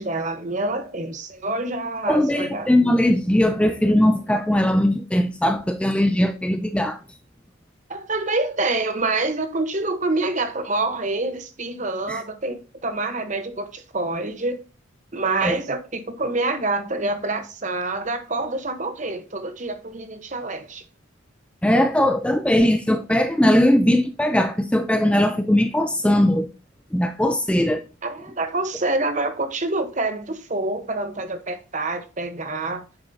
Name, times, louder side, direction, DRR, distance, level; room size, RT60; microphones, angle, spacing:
voice 1, 0.0-2.7 7.9-14.6 15.1-20.8 28.0-32.8, right 2 dB, 35° right, 1.0 m, -26 dB
voice 2, 2.1-7.0 12.1-12.2 15.4-15.6 21.6-26.5 26.9-27.8, left 1 dB, 5° left, 0.4 m, -19 dB
9.0 x 7.1 x 2.7 m
head